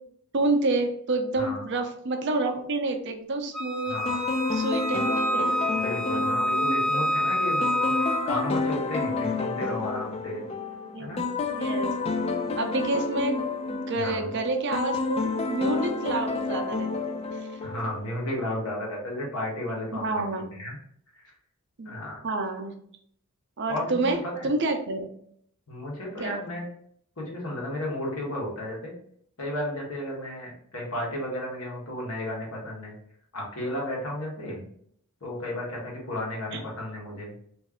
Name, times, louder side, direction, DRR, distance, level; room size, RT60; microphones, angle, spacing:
voice 1, 0.3-4.0 4.5-5.6 6.1-6.2 9.1-9.3 10.9-11.1 11.5-11.9 12.6-16.9 17.3-17.5 20.0-20.4 21.8-21.9 22.2-22.7 23.6-24.2 24.4-25.1 26.2-26.4 36.5-36.6, right 2 dB, 55° right, 5 dB, 0.6 m, -28 dB
Wind instrument woodwind instrument, 3.5-8.2, equal, ahead, 0.8 m, -27 dB
voice 2, 3.9-4.2 4.9-5.1 5.8-10.4 11.0-11.2 13.9-14.3 17.6-20.8 21.1-21.2 21.8-22.2 23.7-24.5 25.7-26.7 27.2-28.9 29.4-32.9 33.3-34.6 35.2-37.3, left 1 dB, 75° left, -2 dB, 1.3 m, -33 dB
sound 1, 4.1-18.3, left 3 dB, 25° left, 0.3 m, -30 dB
3.1 x 2.6 x 3.6 m, 0.65 s
head